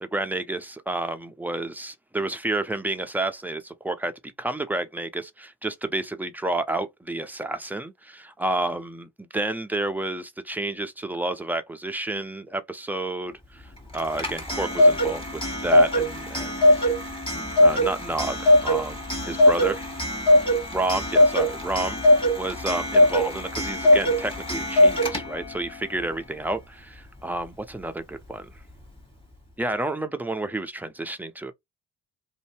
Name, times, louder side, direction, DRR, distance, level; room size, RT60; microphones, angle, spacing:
voice 1, 0.0-16.7 17.3-19.8 20.7-22.0 22.4-28.5 29.6-31.5, right 2 dB, 5° right, 0.5 m, -30 dB
Clock, 13.9-25.6, left 1 dB, 10° left, 1.4 m, -21 dB
2.6 x 2.2 x 3.0 m
hypercardioid pair, 45°, 45 cm